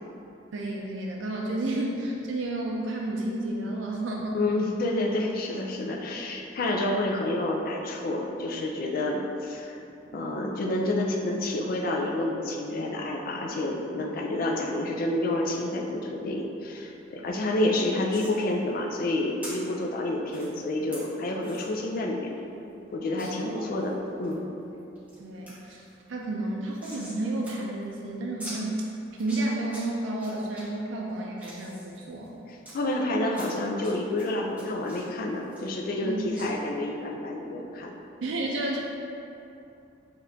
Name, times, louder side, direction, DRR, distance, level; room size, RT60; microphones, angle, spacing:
voice 1, 0.5-4.4 10.2-10.5 17.6-17.7 23.2-23.7 24.6-24.7 25.2-25.8 26.1-28.9 29.2-32.3 36.0-36.2 38.2-38.8, right 1 dB, 80° right, -1 dB, 0.4 m, -31 dB
voice 2, 4.3-9.8 10.1-22.3 22.9-23.9 24.2-24.4 32.5-37.9, left 1 dB, 50° left, -1 dB, 0.4 m, -29 dB
sound 1, 18.1-18.3 19.4-19.5 20.3-20.5 20.9-21.0 21.4-21.6 22.0-22.1 22.4-22.5 23.2-23.3 23.8-24.3 24.8-25.2 25.5-25.6 25.8-27.2 27.4-27.5 27.8-27.9 28.4-28.6 29.1-29.8 30.2-30.6 31.1-32.7 33.3-33.9 34.2-36.1 36.3-36.5, right 1 dB, 10° right, 1.1 m, -43 dB
6.0 x 2.5 x 2.7 m, 2.8 s
head